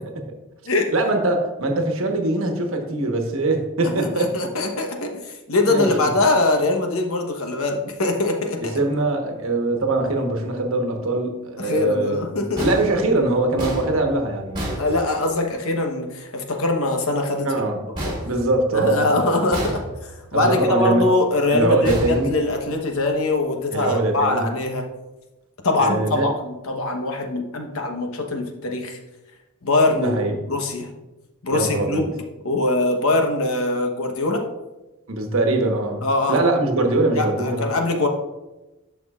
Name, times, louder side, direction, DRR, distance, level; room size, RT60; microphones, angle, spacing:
voice 1, 0.9-4.5 5.7-6.1 8.7-12.3 12.6-14.8 17.4-17.8 18.2-19.2 20.3-21.1 21.5-22.3 23.7-24.5 25.8-26.3 30.0-30.5 31.5-32.1 35.1-37.7, right 2 dB, 65° right, 3 dB, 1.2 m, -22 dB
voice 2, 4.0-8.8 11.6-12.6 14.8-17.5 18.0-18.1 18.7-24.9 25.6-29.0 29.6-30.9 31.4-32.1 32.4-34.4 36.0-36.4 37.1-38.1, left 2 dB, 70° left, 3 dB, 1.1 m, -22 dB
sound 1, 12.6-15.6 17.9-19.0 19.5-20.3 21.8-22.9, right 1 dB, 20° right, 2.0 m, -31 dB
11.0 x 6.0 x 2.4 m, 1.0 s
head